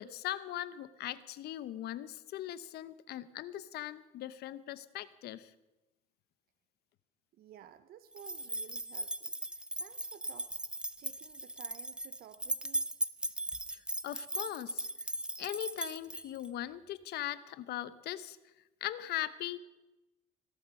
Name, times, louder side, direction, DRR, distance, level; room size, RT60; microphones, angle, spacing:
voice 1, 0.0-5.5 13.7-14.9 15.4-18.4 18.8-19.6, left 13 dB, 70° left, 15 dB, 0.8 m, -40 dB
voice 2, 7.4-10.5 11.0-12.9, right 10 dB, 60° right, 13 dB, 0.7 m, -55 dB
sound 1, 8.2-16.5, right 1 dB, 5° right, 0.6 m, -38 dB
17.0 x 12.5 x 5.4 m, 1.0 s
cardioid pair, 110°, 17 cm